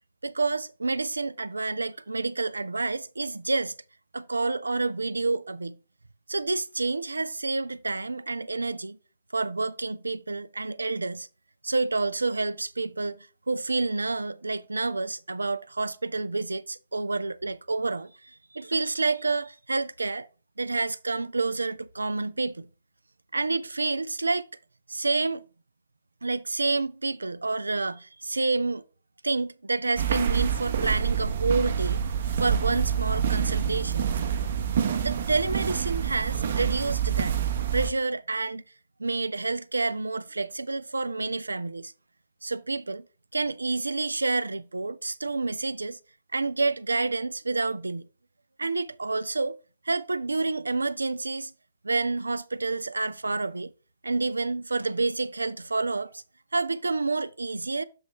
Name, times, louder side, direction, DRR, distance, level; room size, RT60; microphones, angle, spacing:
voice 1, 0.2-3.7 4.1-5.8 6.3-9.0 9.3-11.3 11.6-20.3 20.6-22.7 23.3-24.5 24.9-25.5 26.2-28.8 29.2-32.0 32.4-34.0 35.0-37.4 37.7-38.6 39.0-41.9 42.4-43.0 43.3-46.0 46.3-48.1 48.6-49.6 49.9-51.5 51.8-53.7 54.0-56.2 56.5-57.8, right 3 dB, 75° right, 0.3 m, -29 dB
sound 1, 30.0-37.9, right 8 dB, 50° right, 0.7 m, -27 dB
6.9 x 3.1 x 5.3 m
figure-of-eight pair, 125°, 0 cm